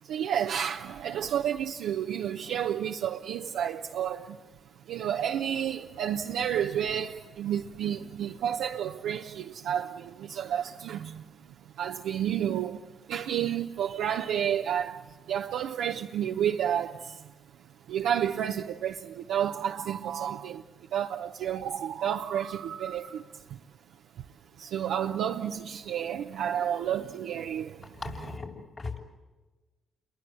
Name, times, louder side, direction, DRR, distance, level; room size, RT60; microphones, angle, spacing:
voice 1, 0.0-4.4 4.8-23.6 24.1-24.3 24.5-28.0, right 9 dB, 75° right, 0.8 m, -31 dB
voice 2, 28.0-29.0, left 4 dB, 50° left, 6.4 m, -38 dB
29.5 x 22.5 x 7.8 m
hypercardioid pair, 40°, 0 cm